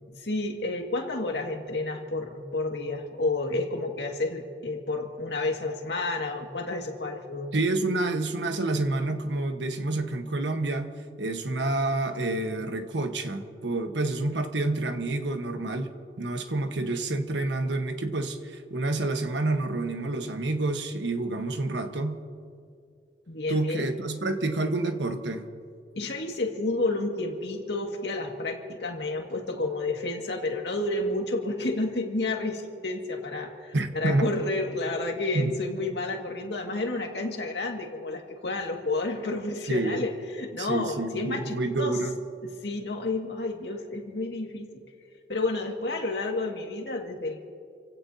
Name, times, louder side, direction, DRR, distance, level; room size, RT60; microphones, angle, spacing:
voice 1, 0.2-7.5 23.3-23.9 25.9-40.1 40.4-42.0 42.6-44.8 45.3-47.4, left 2 dB, 70° left, 2 dB, 2.0 m, -30 dB
voice 2, 7.5-10.9 11.2-15.9 16.2-22.2 23.5-25.5 33.7-34.3 35.3-35.6 39.7-40.0 40.6-42.2, right 2 dB, 80° right, 6 dB, 1.3 m, -28 dB
29.0 x 16.5 x 2.8 m, 2.3 s
head